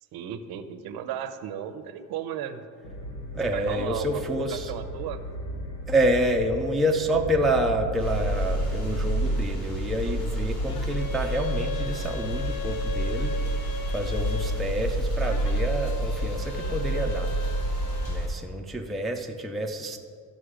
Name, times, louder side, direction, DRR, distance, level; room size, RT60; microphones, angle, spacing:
voice 1, 0.1-2.6 3.5-5.2, right 9 dB, 85° right, 9 dB, 0.8 m, -35 dB
sound 1, 2.8-9.5, equal, 70° left, 1.6 m, -36 dB
voice 2, 3.3-4.7 5.9-13.4 13.9-17.3 18.1-20.0, right 1 dB, ahead, 1 dB, 0.4 m, -28 dB
sound 2, 8.0-18.3, right 1 dB, 40° left, 2.4 m, -28 dB
sound 3, 10.7-14.7 15.2-18.3, left 2 dB, 55° left, 0.7 m, -38 dB
13.0 x 5.5 x 4.9 m, 2.2 s
cardioid pair, 145°, 36 cm